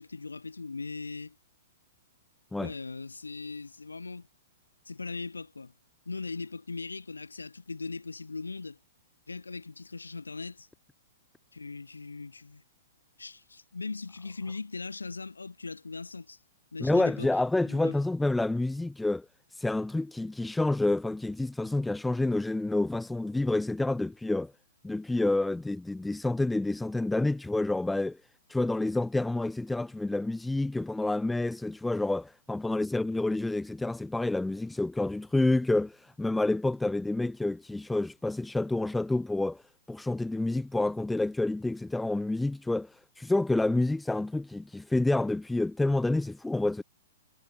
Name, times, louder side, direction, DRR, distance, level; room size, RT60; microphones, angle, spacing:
voice 1, 0.0-1.4 2.6-4.3 4.8-5.7 6.0-8.8 9.3-10.7 11.5-12.6 13.2-16.4 16.7-17.3 17.6-18.0, left 4 dB, 75° left, 6.8 m, -39 dB
voice 2, 16.8-19.2 19.6-24.5 24.8-28.2 28.5-39.6 39.9-42.9 43.2-46.8, left 2 dB, 5° left, 1.5 m, -28 dB
figure-of-eight pair, 110°, 0 cm